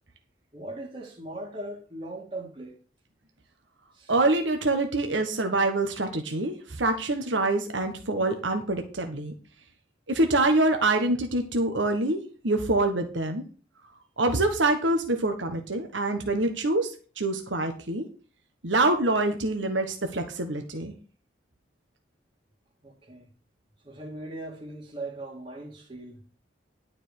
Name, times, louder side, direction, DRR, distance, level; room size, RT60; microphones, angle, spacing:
voice 1, 0.5-2.8 3.9-4.1 22.8-23.3 23.8-26.2, right 2 dB, 35° right, 1.8 m, -39 dB
voice 2, 4.1-9.3 10.1-13.4 14.2-18.1 18.6-20.9, right 2 dB, 90° right, 1.4 m, -25 dB
11.5 x 5.2 x 6.6 m
head